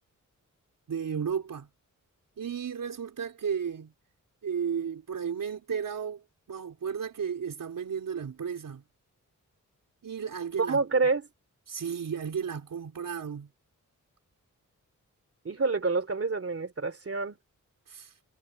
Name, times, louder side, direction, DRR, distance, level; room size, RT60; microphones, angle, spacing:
voice 1, 0.9-1.7 2.4-3.9 4.4-8.8 10.0-10.8 11.7-13.5 17.9-18.2, right 7 dB, 85° right, 4.3 m, -34 dB
voice 2, 10.6-11.3 15.4-17.4, right 4 dB, 45° right, 2.9 m, -27 dB
wide cardioid pair, 85°, 32 cm